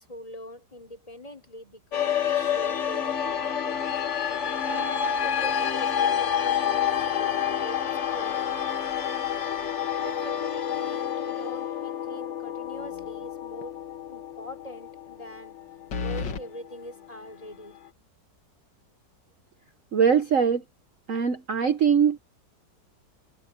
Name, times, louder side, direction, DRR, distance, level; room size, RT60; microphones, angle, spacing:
voice 1, 0.0-4.0 4.6-7.9 8.1-8.7 10.0-13.8 14.1-15.5 16.0-18.1, left 1 dB, 20° left, 3.7 m, -42 dB
sound 1, 1.9-16.4, left 8 dB, 45° left, 1.2 m, -28 dB
sound 2, 12.8-13.3 13.6-13.7 15.9-16.4, left 4 dB, 75° left, 2.3 m, -32 dB
voice 2, 19.9-20.6 21.1-22.2, right 7 dB, 50° right, 1.2 m, -22 dB
omnidirectional pair, 1.9 m